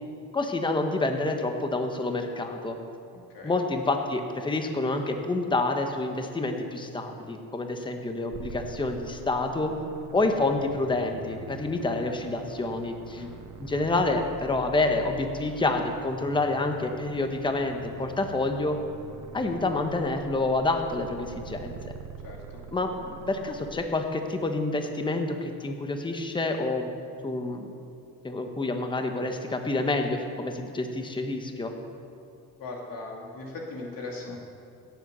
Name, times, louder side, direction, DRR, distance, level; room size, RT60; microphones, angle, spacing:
voice 1, 0.3-2.8 3.4-9.7 10.1-13.2 13.6-18.8 19.3-21.9 22.7-27.7 28.2-31.7, left 2 dB, 10° left, 5 dB, 1.1 m, -28 dB
sound 1, 8.3-23.7, right 6 dB, 45° right, 1.2 m, -44 dB
voice 2, 22.2-22.6 32.6-34.4, left 3 dB, 60° left, -1 dB, 2.7 m, -39 dB
16.5 x 8.0 x 6.9 m, 2.5 s
cardioid pair, 115°, 38 cm